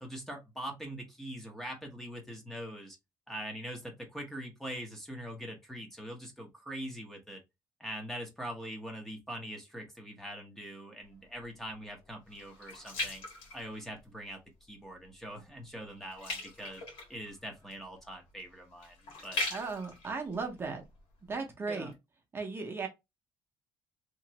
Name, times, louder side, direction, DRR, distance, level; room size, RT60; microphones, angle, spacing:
voice 1, 0.0-3.0 3.3-7.4 7.8-13.2 13.5-14.4 14.7-16.8 17.1-19.0 19.2-19.4 21.7-22.0, equal, 5° left, 0.8 m, -43 dB
sound 1, 11.1-14.3 14.8-15.1 15.4-21.4 21.9-22.0, left 2 dB, 85° left, 1.5 m, -41 dB
voice 2, 19.5-20.8 21.3-21.9 22.3-22.9, right 4 dB, 25° right, 0.7 m, -36 dB
2.9 x 2.5 x 2.8 m
cardioid pair, 120°, 9 cm